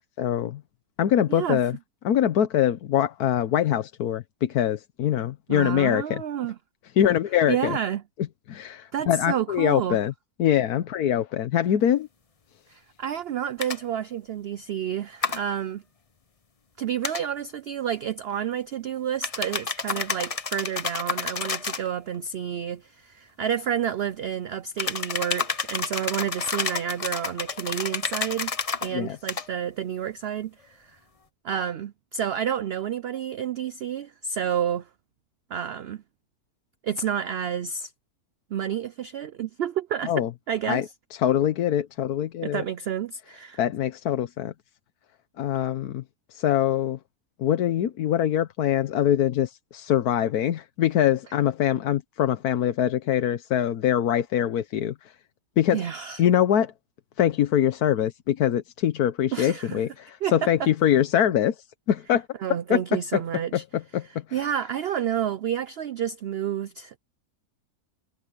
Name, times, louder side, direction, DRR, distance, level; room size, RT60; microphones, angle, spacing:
voice 1, 0.2-0.6 1.0-1.8 2.0-6.2 7.0-7.8 8.5-10.1 10.4-12.1 28.9-29.2 40.0-40.3 40.7-40.8 41.2-42.6 43.6-44.5 45.4-46.0 46.3-47.0 47.4-55.1 55.6-55.8 56.2-56.7 57.2-62.3 62.7-63.2 63.5-64.4, left 10 dB, 90° left, 1.4 m, -23 dB
voice 2, 1.3-1.6 5.5-6.6 7.5-8.0 8.9-10.0 12.7-15.8 16.8-28.5 28.8-31.0 31.4-34.9 35.5-36.0 36.8-37.9 38.5-40.1 40.5-40.8 42.4-43.6 55.7-56.2 59.3-59.8 60.2-60.7 62.4-63.6 64.3-67.0, right 9 dB, 65° right, 0.6 m, -30 dB
sound 1, 13.6-13.8 15.2-15.4 17.0-17.2 19.2-21.9 24.8-28.9 29.3-29.5, left 5 dB, 30° left, 0.7 m, -30 dB
omnidirectional pair, 1.6 m